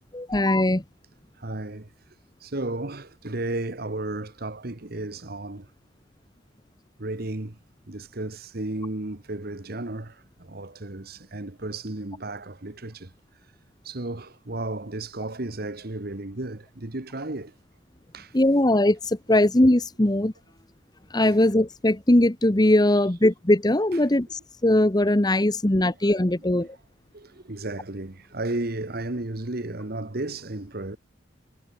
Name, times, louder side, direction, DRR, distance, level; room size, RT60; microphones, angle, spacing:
voice 1, 0.1-0.8 18.3-20.3 21.1-24.3 24.6-26.7, left 1 dB, 20° left, 1.1 m, -20 dB
voice 2, 1.4-1.9 2.4-5.7 7.0-7.6 7.9-13.1 13.8-17.5 18.1-18.3 21.3-21.4 23.9-24.0 25.8-26.0 26.5-26.6 27.1-31.0, right 2 dB, 55° right, 1.6 m, -33 dB
head